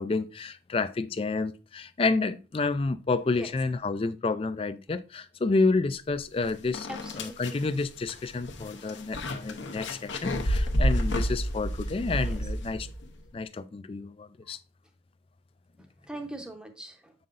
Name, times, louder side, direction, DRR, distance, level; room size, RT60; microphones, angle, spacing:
voice 1, 0.0-12.9 13.3-14.6, left 3 dB, 30° left, 0.3 m, -29 dB
sound 1, 6.2-6.3 6.7-13.1, equal, 80° left, 0.9 m, -30 dB
voice 2, 6.9-7.6 12.2-12.4 15.8-17.1, right 1 dB, 5° right, 0.7 m, -42 dB
7.6 x 5.5 x 2.5 m
head